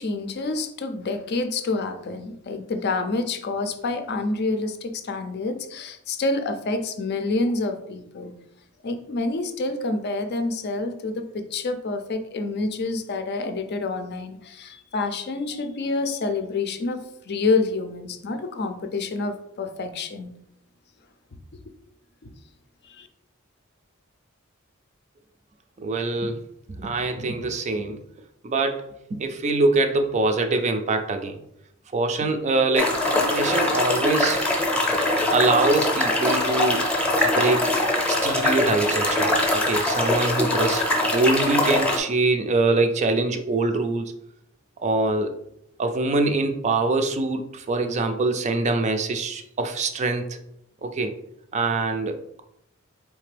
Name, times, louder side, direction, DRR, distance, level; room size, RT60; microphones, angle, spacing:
voice 1, 0.0-8.4 8.8-20.4 22.8-23.1, left 3 dB, 50° left, 8 dB, 0.5 m, -28 dB
voice 2, 25.8-26.4 26.7-28.0 28.4-31.4 31.9-32.9 33.3-34.4 35.3-36.9 37.4-37.7 38.1-40.8 41.1-44.1 44.8-45.3 45.8-50.4 50.8-51.1 51.5-52.4, right 3 dB, 35° right, 6 dB, 0.4 m, -24 dB
sound 1, 32.8-42.0, left 1 dB, 5° left, 0.7 m, -22 dB
4.3 x 3.2 x 3.3 m, 0.75 s
head